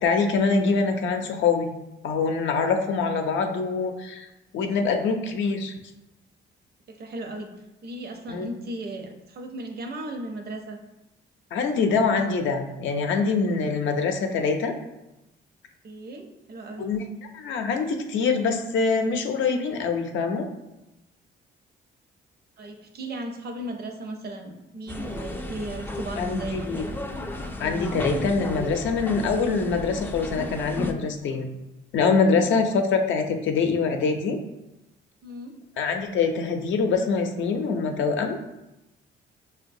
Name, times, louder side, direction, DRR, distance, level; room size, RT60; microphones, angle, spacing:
voice 1, 0.0-1.7 2.0-4.3 4.5-5.7 8.3-8.5 11.5-14.7 16.8-17.0 17.3-20.5 26.2-26.8 27.6-31.5 31.9-34.4 35.8-38.4, left 4 dB, 70° left, 5 dB, 0.5 m, -24 dB
voice 2, 6.9-10.8 15.8-16.9 22.6-27.0 32.3-32.6 35.2-35.5, right 1 dB, 55° right, 4 dB, 0.6 m, -36 dB
sound 1, 24.9-30.9, left 1 dB, 10° left, 0.3 m, -33 dB
5.8 x 2.2 x 2.6 m, 0.95 s
cardioid pair, 90°, 20 cm